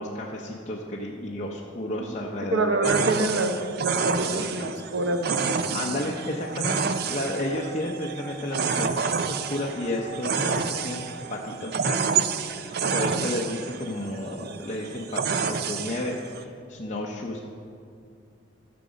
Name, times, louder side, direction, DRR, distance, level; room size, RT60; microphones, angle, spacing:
voice 1, 0.0-3.3 4.0-4.8 5.7-8.9 9.2-11.0 11.3-12.1 12.5-17.4, left 1 dB, 40° left, -3 dB, 0.7 m, -32 dB
voice 2, 2.5-3.5 3.8-5.4 5.7-6.0 12.8-13.3, right 2 dB, 85° right, 6 dB, 0.8 m, -27 dB
sound 1, 2.8-16.4, right 6 dB, 55° right, 0.5 m, -29 dB
sound 2, 5.4-11.5, right 4 dB, 5° left, 1.6 m, -44 dB
11.0 x 6.8 x 5.1 m, 2.4 s
head